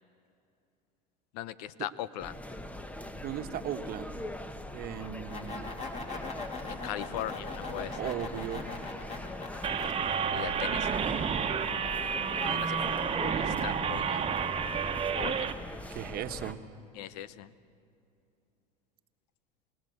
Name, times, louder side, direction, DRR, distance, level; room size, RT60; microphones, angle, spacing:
voice 1, 1.3-2.4 6.7-8.1 10.3-10.9 12.4-14.3 15.2-15.5 17.0-17.5, left 12 dB, 75° left, 17 dB, 0.8 m, -39 dB
sound 1, 2.2-16.5, left 1 dB, 5° left, 1.0 m, -42 dB
voice 2, 3.2-4.1 4.7-5.7 8.0-8.7 15.9-16.6, right 10 dB, 45° right, 8 dB, 1.3 m, -37 dB
sound 2, 5.0-9.9, left 3 dB, 35° left, 3.3 m, -41 dB
sound 3, 9.6-15.5, right 7 dB, 30° right, 1.3 m, -30 dB
29.5 x 17.5 x 8.0 m, 2.7 s
supercardioid pair, 100°, 21 cm